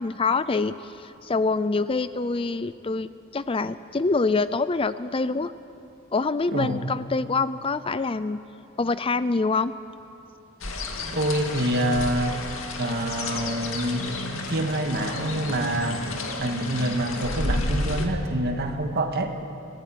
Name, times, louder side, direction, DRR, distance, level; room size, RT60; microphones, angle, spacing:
voice 1, 0.0-5.5 6.1-8.4 8.8-9.7, left 3 dB, 25° left, 14 dB, 0.5 m, -25 dB
sound 1, 10.6-18.1, left 2 dB, 70° left, 2.5 m, -31 dB
voice 2, 11.1-12.4 12.8-16.1 16.4-19.4, right 1 dB, 50° right, 4 dB, 2.0 m, -26 dB
23.5 x 18.0 x 9.3 m, 2.7 s
head